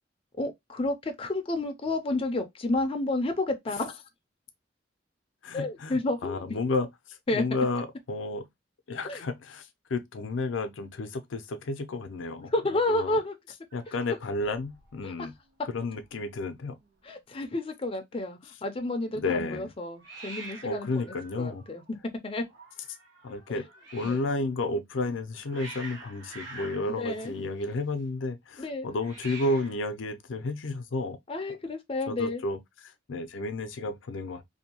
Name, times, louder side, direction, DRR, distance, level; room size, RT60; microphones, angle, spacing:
voice 1, 0.4-4.0 5.5-6.4 7.3-7.4 9.0-9.2 12.5-13.3 15.0-15.1 17.0-20.9 21.4-21.8 22.2-22.4 23.5-23.6 24.0-24.2 26.9-27.3 28.6-28.9 31.3-32.4, left 2 dB, 30° left, 0.5 m, -30 dB
voice 2, 5.4-8.5 8.9-13.2 13.7-15.3 15.7-16.8 19.1-19.7 20.6-21.6 23.2-23.7 23.9-31.2 32.1-34.4, left 2 dB, 85° left, 0.5 m, -32 dB
Hiss, 13.7-15.1 15.3-15.8 16.0-16.1 16.3-17.0 20.0-24.3 25.1-28.0 28.9-29.9, right 3 dB, 70° right, 1.3 m, -47 dB
2.6 x 2.2 x 2.8 m
head